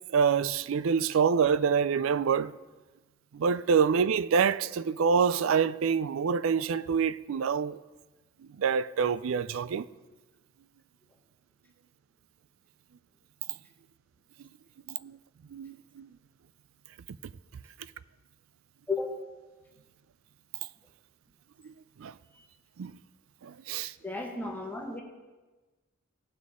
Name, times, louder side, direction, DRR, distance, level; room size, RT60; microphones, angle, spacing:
voice 1, 0.1-2.5 3.3-7.8 8.5-9.9 14.9-15.2 15.5-16.1 21.6-21.7 22.0-22.1 22.8-22.9 23.4-23.9, right 6 dB, 80° right, 0.4 m, -26 dB
voice 2, 18.9-19.2 22.3-22.5 24.0-25.0, left 3 dB, 10° left, 1.3 m, -34 dB
18.0 x 6.1 x 3.6 m
head